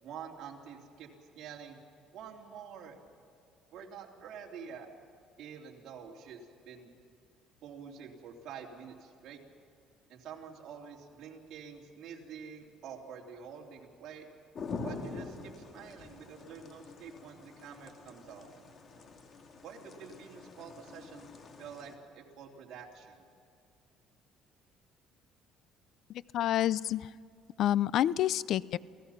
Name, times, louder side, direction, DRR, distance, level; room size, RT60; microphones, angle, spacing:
voice 1, 0.0-1.1 1.4-1.8 2.1-3.0 3.7-4.9 5.4-6.4 6.7-6.9 7.6-9.4 10.1-14.3 14.8-18.5 19.6-21.3 21.6-23.2, right 7 dB, 60° right, -1 dB, 3.3 m, -47 dB
sound 1, 14.6-22.0, left 4 dB, 40° left, 2.2 m, -45 dB
voice 2, 26.1-27.1 27.6-28.8, left 12 dB, 60° left, 20 dB, 0.4 m, -28 dB
28.5 x 17.0 x 5.8 m, 2.5 s
cardioid pair, 140°, 0 cm